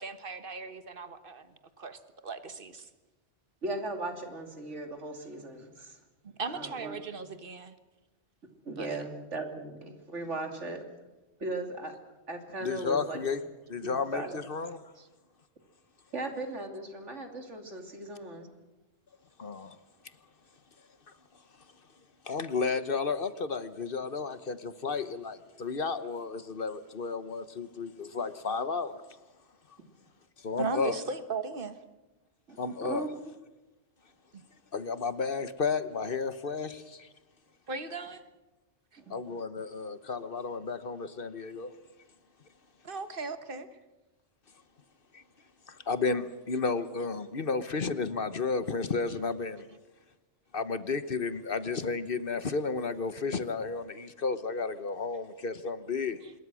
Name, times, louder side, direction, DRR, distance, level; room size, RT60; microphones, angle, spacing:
voice 1, 0.0-2.9 6.4-7.7 8.8-9.0 15.0-15.1 30.5-31.8 37.7-38.2 38.9-39.0 42.8-43.7 56.2-56.3, right 4 dB, 50° right, 1.6 m, -38 dB
voice 2, 3.6-6.0 6.5-7.0 8.6-10.8 11.4-12.0 12.3-13.2 13.8-14.4 16.1-18.5 32.5-33.1 39.0-39.5, right 2 dB, 85° right, 3.2 m, -38 dB
voice 3, 12.6-13.4 13.7-14.8 19.4-19.7 22.3-29.0 30.4-30.9 32.6-33.0 34.7-37.1 39.1-41.7 45.1-45.2 45.7-49.7 50.5-56.2, left 4 dB, 50° left, 1.2 m, -32 dB
26.5 x 21.5 x 6.2 m
omnidirectional pair, 1.2 m